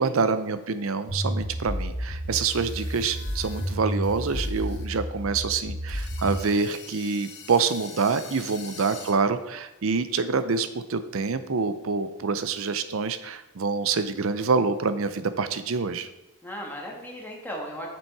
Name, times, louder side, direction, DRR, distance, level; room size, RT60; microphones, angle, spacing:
voice 1, 0.0-16.1, right 4 dB, 70° right, 11 dB, 0.6 m, -26 dB
sound 1, 1.1-6.5, equal, 85° left, 2.4 m, -31 dB
sound 2, 2.4-4.9 5.2-5.3 5.9-9.1, left 6 dB, 50° left, 1.2 m, -45 dB
voice 2, 16.4-17.9, equal, 10° left, -2 dB, 1.5 m, -37 dB
7.2 x 6.1 x 4.7 m, 0.96 s
head